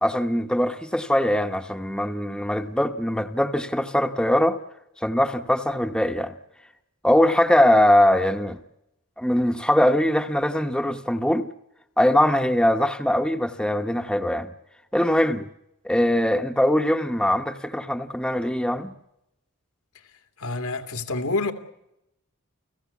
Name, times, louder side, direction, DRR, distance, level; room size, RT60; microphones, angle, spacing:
voice 1, 0.0-4.6 5.0-6.3 7.0-8.6 9.2-11.5 12.0-14.5 14.9-15.5 15.8-18.9, left 1 dB, 5° left, 1.0 m, -21 dB
voice 2, 20.4-21.5, left 2 dB, 85° left, 2.5 m, -27 dB
30.0 x 16.5 x 8.4 m
head